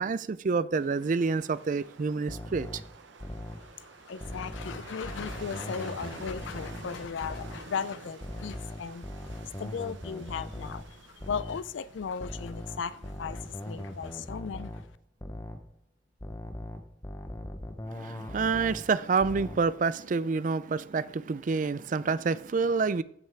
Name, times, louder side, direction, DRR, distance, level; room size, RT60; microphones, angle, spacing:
voice 1, 0.0-2.7 17.9-23.0, right 4 dB, 40° right, 0.3 m, -28 dB
sound 1, 0.7-14.3, right 3 dB, 70° right, 0.9 m, -49 dB
sound 2, 2.3-3.7 4.2-6.9 7.2-7.7 8.2-11.7 12.2-14.9 15.2-15.7 16.2-18.9 19.2-19.7, left 1 dB, 15° left, 0.7 m, -40 dB
voice 2, 3.5-14.9, left 6 dB, 70° left, 0.4 m, -37 dB
15.0 x 5.6 x 3.4 m
head